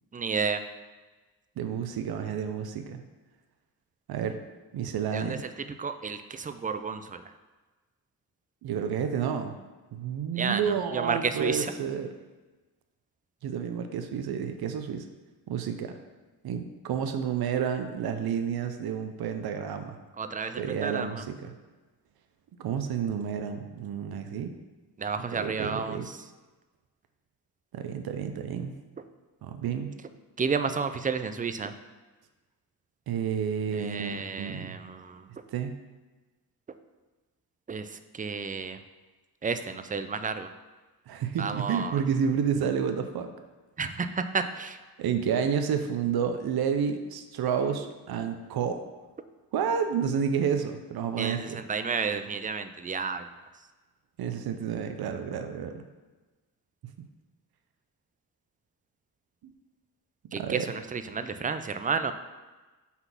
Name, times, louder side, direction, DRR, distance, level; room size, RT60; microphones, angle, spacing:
voice 1, 0.1-0.6 5.1-5.5 5.8-7.2 10.3-11.7 20.2-21.2 25.0-26.2 30.4-31.7 33.7-35.3 37.7-37.9 38.1-38.8 39.4-40.5 41.4-42.0 43.8-44.8 51.2-53.3 60.3-62.1, right 5 dB, 20° right, 10 dB, 0.4 m, -31 dB
voice 2, 1.6-3.0 4.1-4.4 4.7-5.4 8.6-9.6 9.9-12.1 13.4-15.0 15.5-16.0 16.4-20.0 20.6-21.5 22.6-24.5 25.3-26.1 27.7-28.7 29.4-29.9 33.1-34.8 35.5-35.7 41.1-43.3 45.0-48.8 49.5-51.6 54.2-55.8 60.3-60.7, right 7 dB, 70° right, 7 dB, 0.6 m, -30 dB
5.6 x 4.0 x 5.9 m, 1.2 s
cardioid pair, 100°, 38 cm